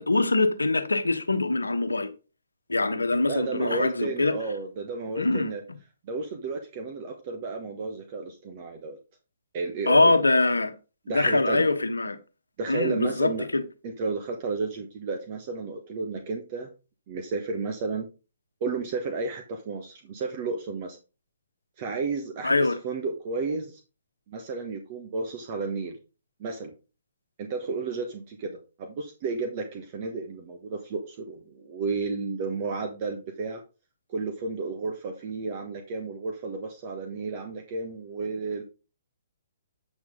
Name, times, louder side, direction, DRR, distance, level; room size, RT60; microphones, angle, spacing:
voice 1, 0.0-2.1 2.7-4.4 5.2-5.5 9.9-10.7 11.1-12.2 12.7-13.6 22.4-22.8, left 2 dB, 85° left, 1.1 m, -23 dB
voice 2, 3.2-5.6 6.0-9.0 9.5-10.1 11.1-11.7 12.6-13.5 13.8-16.7 17.1-18.1 18.6-21.0 21.8-23.8 24.3-26.0 26.4-26.7 27.4-33.6 34.1-38.6, right 4 dB, 40° right, 1.3 m, -32 dB
8.7 x 6.1 x 3.7 m
figure-of-eight pair, 130°, 0 cm